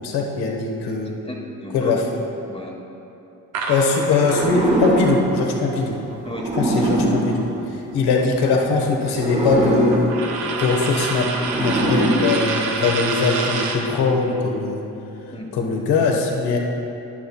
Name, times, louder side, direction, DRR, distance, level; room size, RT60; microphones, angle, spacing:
voice 1, 0.0-1.2 1.7-2.0 3.7-6.0 6.6-10.2 10.6-11.3 11.6-14.8 15.5-16.6, left 4 dB, 70° left, 1 dB, 1.4 m, -21 dB
voice 2, 1.2-2.0 2.4-2.8 6.2-6.9 15.3-15.5, left 1 dB, 15° left, -1 dB, 1.4 m, -34 dB
sound 1, 3.5-7.6 7.9-13.9, right 4 dB, 90° right, 0.9 m, -29 dB
sound 2, 4.2-8.4 9.1-13.0, right 1 dB, 15° right, 1.3 m, -23 dB
11.0 x 11.0 x 2.3 m, 2.9 s
hypercardioid pair, 50°, 40 cm